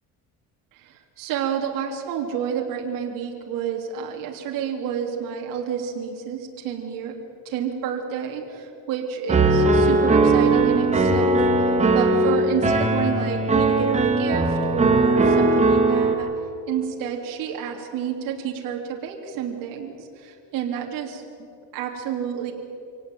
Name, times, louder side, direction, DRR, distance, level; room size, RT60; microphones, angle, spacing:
voice 1, 0.7-7.1 7.4-16.3 16.7-21.3 21.7-22.5, right 8 dB, 75° right, 1 dB, 3.3 m, -30 dB
Piano, 9.3-16.1, right 2 dB, 20° right, 2.5 m, -19 dB
26.0 x 18.0 x 9.2 m, 2.6 s
cardioid pair, 130°, 33 cm